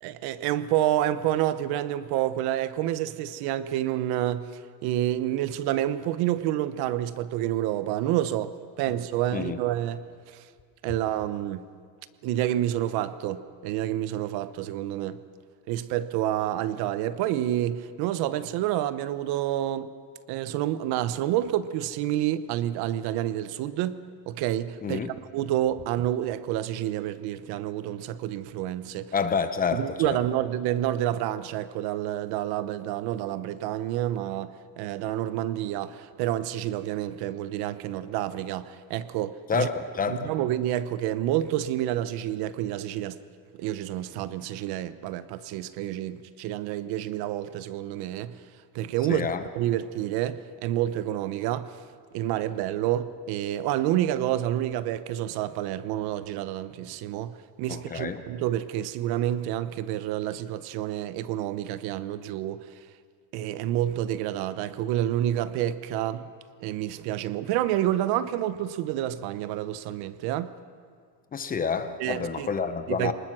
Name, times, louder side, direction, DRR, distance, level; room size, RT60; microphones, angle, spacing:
voice 1, 0.0-10.4 10.8-11.7 12.2-15.2 15.7-19.9 20.3-25.0 25.3-29.1 29.7-39.7 40.1-43.2 43.5-48.4 48.7-49.3 49.5-51.8 52.1-62.7 63.3-66.3 66.6-70.5 72.0-72.5 72.9-73.1, right 12 dB, 65° right, 0.9 m, -29 dB
voice 2, 24.8-25.1 29.1-30.2 39.5-40.3 49.1-49.4 57.7-58.2 71.3-73.1, left 5 dB, 20° left, 0.9 m, -28 dB
24.5 x 20.0 x 6.2 m
cardioid pair, 160°, 41 cm